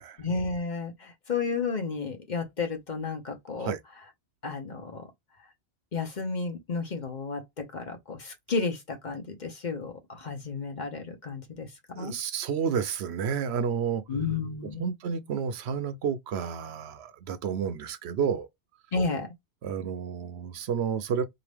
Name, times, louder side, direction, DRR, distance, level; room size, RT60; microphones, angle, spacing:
voice 1, 0.2-3.7 4.4-5.0 5.9-11.7 11.9-12.2 14.1-14.8 18.9-19.3, left 4 dB, 45° left, 0.9 m, -32 dB
voice 2, 11.9-14.0 14.8-18.5 19.6-21.2, right 7 dB, 75° right, 0.8 m, -30 dB
4.0 x 2.9 x 3.4 m
omnidirectional pair, 1.1 m